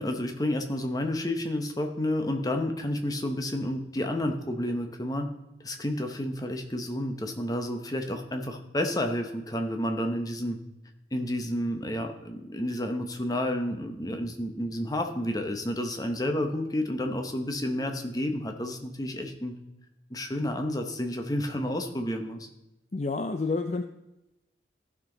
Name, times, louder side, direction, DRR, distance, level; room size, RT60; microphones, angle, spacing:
voice 1, 0.0-5.3 5.6-10.6 11.1-19.6 20.1-22.5, left 1 dB, 20° left, 5 dB, 0.9 m, -30 dB
voice 2, 22.9-23.8, left 3 dB, 40° left, 6 dB, 0.4 m, -29 dB
14.5 x 6.0 x 3.9 m, 0.95 s
head